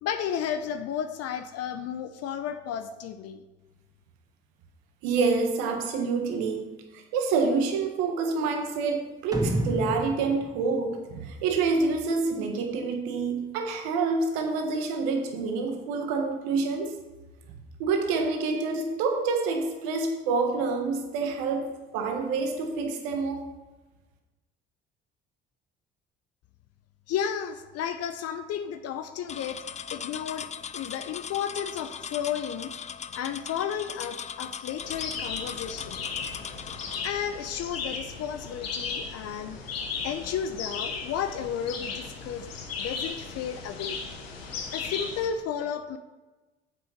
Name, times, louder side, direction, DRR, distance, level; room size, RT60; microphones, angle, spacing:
voice 1, 0.0-3.4 27.1-29.6 29.9-30.5 30.7-32.7 33.1-36.0 37.0-39.6 40.0-42.5 42.8-44.0 44.7-46.0, left 8 dB, 55° left, 9 dB, 0.7 m, -33 dB
voice 2, 5.0-6.6 6.9-16.9 17.8-21.7 21.9-23.4, right 4 dB, 75° right, 3 dB, 1.5 m, -27 dB
sound 1, 9.3-11.8, right 1 dB, 15° right, 1.9 m, -31 dB
sound 2, 29.3-37.1, left 7 dB, 25° left, 0.4 m, -39 dB
sound 3, 34.8-45.3, left 5 dB, 85° left, 1.2 m, -36 dB
7.9 x 6.3 x 5.8 m, 1.2 s
hypercardioid pair, 55°, 29 cm